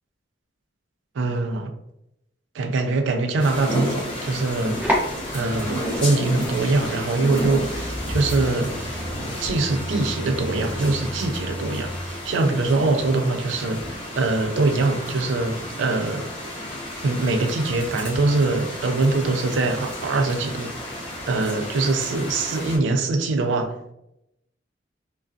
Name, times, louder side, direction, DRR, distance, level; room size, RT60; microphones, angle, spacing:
voice 1, 1.2-1.7 2.5-9.0 9.4-16.3 17.0-20.9 21.3-23.9, right 3 dB, 90° right, 0.4 m, -23 dB
sound 1, 3.4-22.8, left 1 dB, 25° left, 0.8 m, -32 dB
sound 2, 4.4-12.0, equal, 10° right, 0.6 m, -32 dB
2.3 x 2.3 x 2.4 m
head